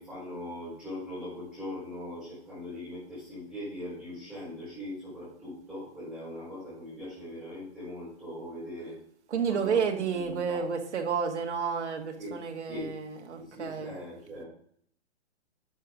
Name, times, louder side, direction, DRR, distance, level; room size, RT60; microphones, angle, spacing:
voice 1, 0.0-9.0 9.5-9.8 10.2-10.6 12.2-12.9 13.4-14.5, left 1 dB, 5° right, -12 dB, 4.2 m, -40 dB
voice 2, 9.3-14.0, right 6 dB, 80° right, 4 dB, 1.8 m, -31 dB
11.0 x 6.3 x 3.8 m, 0.63 s
hypercardioid pair, 165°, 34 cm